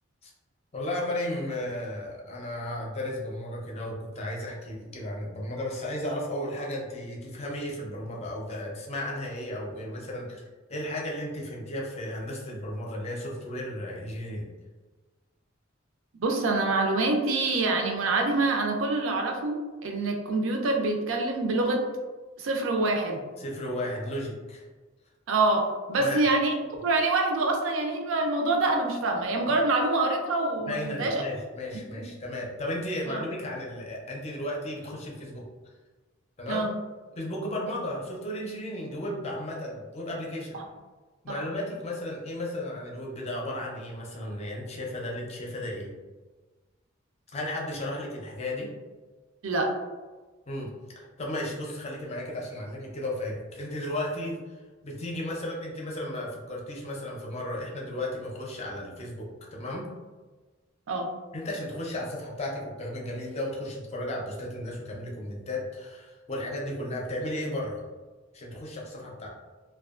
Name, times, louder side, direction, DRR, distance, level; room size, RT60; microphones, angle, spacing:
voice 1, 0.7-10.4 10.7-14.5 23.4-24.7 26.0-26.2 30.7-35.4 36.4-36.7 37.2-40.6 41.2-45.9 47.3-48.7 50.5-50.7 51.0-54.4 54.8-59.9 61.3-67.8 68.3-69.3, left 1 dB, 30° left, -2 dB, 0.5 m, -34 dB
voice 2, 16.2-21.8 22.4-23.2 25.3-26.5 26.8-31.2 31.9-32.1 33.1-33.2 36.5-36.7 40.5-40.6 41.3-41.4 49.4-49.7 60.9-61.1, right 2 dB, 80° right, 2 dB, 0.4 m, -26 dB
2.6 x 2.2 x 2.4 m, 1.3 s
head